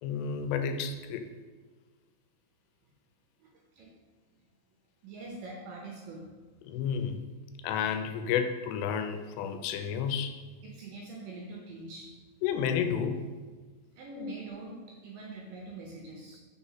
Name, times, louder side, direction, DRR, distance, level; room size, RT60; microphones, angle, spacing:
voice 1, 0.0-1.3 6.6-7.2 7.6-10.4 12.4-13.2 14.2-14.3, left 7 dB, 85° left, 7 dB, 2.7 m, -31 dB
voice 2, 3.4-3.9 5.0-6.2 10.6-12.1 14.0-16.4, right 3 dB, 75° right, -1 dB, 2.1 m, -44 dB
5.8 x 4.1 x 5.6 m, 1.4 s
omnidirectional pair, 4.8 m